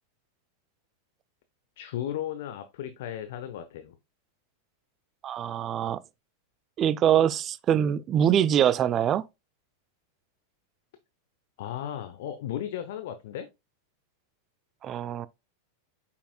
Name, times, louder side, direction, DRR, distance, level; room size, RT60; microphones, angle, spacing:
voice 1, 1.8-4.0 11.6-13.5, left 10 dB, 55° left, 0.7 m, -35 dB
voice 2, 5.2-6.0 6.8-9.2 14.8-15.3, right 9 dB, 30° right, 0.4 m, -24 dB
8.4 x 5.8 x 2.3 m
figure-of-eight pair, 90°, 0 cm